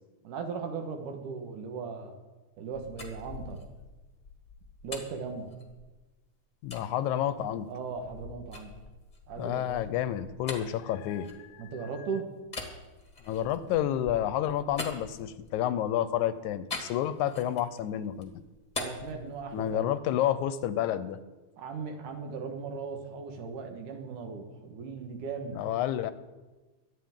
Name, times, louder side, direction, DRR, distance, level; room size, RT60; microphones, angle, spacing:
voice 1, 0.2-2.2 2.6-3.6 4.8-5.5 7.7-8.7 9.3-9.9 11.6-12.3 18.8-19.9 21.6-25.6, right 5 dB, 85° right, 4 dB, 2.9 m, -38 dB
sound 1, 2.5-6.1 6.7-6.9 7.4-11.9 12.4-15.7 16.7-17.8 18.1-19.9, left 3 dB, 25° left, 1.0 m, -43 dB
voice 2, 6.6-7.7 9.4-11.9 13.3-18.3 19.5-21.2 25.5-26.1, left 11 dB, 80° left, 13 dB, 1.9 m, -30 dB
23.5 x 9.0 x 3.7 m, 1.2 s
omnidirectional pair, 3.5 m